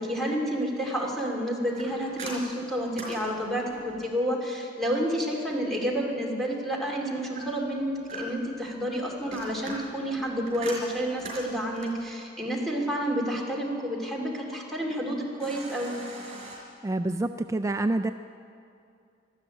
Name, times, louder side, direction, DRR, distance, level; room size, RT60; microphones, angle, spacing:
voice 1, 0.0-15.9, equal, ahead, -2 dB, 2.5 m, -30 dB
sound 1, 1.7-4.0 7.4-8.6 9.1-12.1 15.4-16.6, right 2 dB, 35° right, 4.5 m, -41 dB
voice 2, 16.8-18.1, right 2 dB, 15° right, 8 dB, 0.3 m, -27 dB
13.0 x 12.5 x 9.0 m, 2.4 s
head